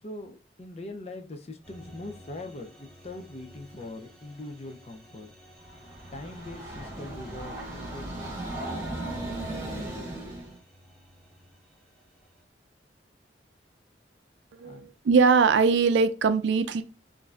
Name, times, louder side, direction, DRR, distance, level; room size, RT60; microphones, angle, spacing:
voice 1, 0.0-5.3 6.1-8.5 14.6-14.9, left 2 dB, 35° left, 7 dB, 0.5 m, -42 dB
sound 1, 1.6-12.4, equal, 5° left, 1.0 m, -54 dB
Train, 5.6-10.6, right 1 dB, 15° right, 1.4 m, -36 dB
voice 2, 14.5-16.8, right 5 dB, 80° right, 11 dB, 0.4 m, -21 dB
5.2 x 2.6 x 2.4 m, 0.34 s
head